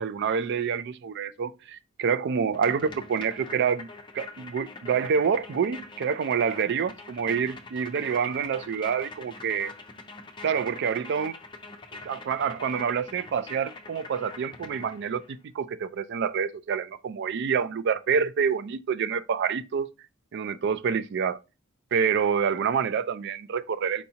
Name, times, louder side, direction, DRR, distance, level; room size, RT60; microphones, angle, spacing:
voice 1, 0.0-3.9 4.1-9.7 10.4-11.4 12.0-15.2 15.5-19.9 20.3-21.4 21.9-24.1, right 6 dB, 55° right, 0.3 m, -27 dB
sound 1, 2.5-15.3, left 3 dB, 20° left, 0.6 m, -44 dB
4.6 x 4.1 x 2.8 m
head